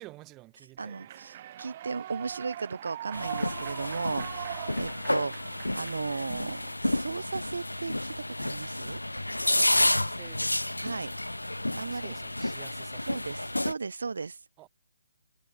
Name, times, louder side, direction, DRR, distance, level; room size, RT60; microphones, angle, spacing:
voice 1, 0.0-1.1 9.6-10.8 11.7-13.5 14.6-14.7, right 20 dB, 15° right, 6.9 m, -51 dB
Human voice / Clapping / Cheering, 0.8-6.7, right 12 dB, 30° right, 3.5 m, -41 dB
voice 2, 0.8-9.0 10.8-11.1 11.8-12.1 13.1-14.5, right 4 dB, 60° right, 0.7 m, -36 dB
sound 1, 3.1-13.7, left 1 dB, 80° left, 0.5 m, -30 dB
figure-of-eight pair, 140°, 0 cm